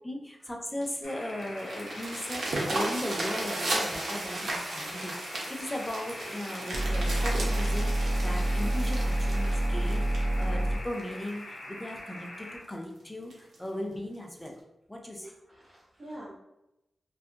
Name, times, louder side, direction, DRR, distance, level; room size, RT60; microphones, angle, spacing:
voice 1, 0.0-14.6 14.9-15.3, left 1 dB, 15° left, 1 dB, 0.5 m, -37 dB
sound 1, 0.8-11.3 11.9-12.0 12.4-12.5 12.8-12.9 13.3-13.6 14.5-14.6, right 2 dB, 85° right, 0.7 m, -35 dB
sound 2, 1.0-12.6, left 1 dB, 85° left, 0.6 m, -43 dB
sound 3, 6.7-10.7, right 1 dB, 50° right, 0.3 m, -27 dB
voice 2, 15.2-16.4, right 1 dB, 35° right, -8 dB, 0.7 m, -46 dB
2.6 x 2.3 x 2.4 m, 0.88 s
wide cardioid pair, 90°, 0 cm